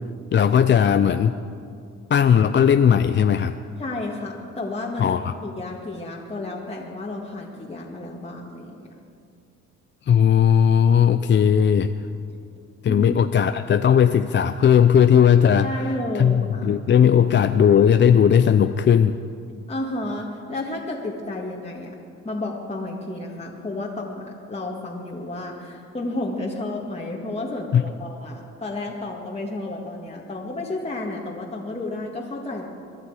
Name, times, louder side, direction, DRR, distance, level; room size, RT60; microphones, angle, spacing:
voice 1, 0.3-1.3 2.1-3.6 5.0-5.3 10.1-11.9 12.8-15.7 16.1-19.2 27.7-27.8, left 8 dB, 40° left, 10 dB, 0.5 m, -17 dB
voice 2, 3.8-5.1 5.4-8.7 12.9-13.1 15.6-16.7 19.7-22.0 22.2-32.7, left 2 dB, 20° left, -3 dB, 1.9 m, -31 dB
23.0 x 11.0 x 4.9 m, 2.4 s
cardioid pair, 90°, 30 cm